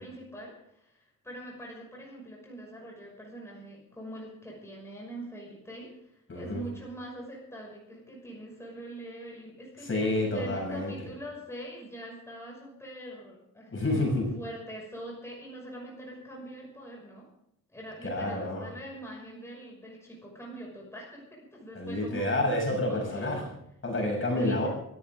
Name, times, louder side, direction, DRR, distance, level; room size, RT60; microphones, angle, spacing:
voice 1, 0.0-13.7 14.3-17.3 17.7-23.5 24.3-24.7, right 1 dB, 10° left, -3 dB, 6.1 m, -43 dB
voice 2, 6.3-6.6 9.8-10.9 13.7-14.3 18.0-18.6 21.8-23.4 23.8-24.7, left 1 dB, 35° left, 0 dB, 7.0 m, -29 dB
25.0 x 14.5 x 3.7 m, 0.76 s
wide cardioid pair, 135°, 34 cm